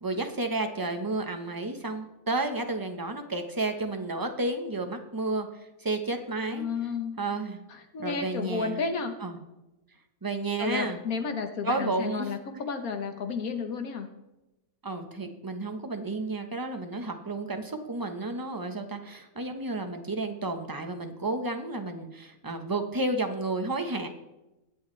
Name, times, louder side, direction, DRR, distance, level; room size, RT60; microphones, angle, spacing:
voice 1, 0.0-5.5 5.8-6.7 7.2-7.6 8.0-8.8 9.2-9.4 10.2-11.0 11.6-12.6 14.8-24.1, right 2 dB, 15° right, 6 dB, 0.8 m, -31 dB
voice 2, 6.5-7.2 7.7-9.1 10.6-14.1, left 5 dB, 70° left, 7 dB, 1.5 m, -32 dB
22.0 x 8.0 x 3.2 m, 0.99 s
omnidirectional pair, 1.6 m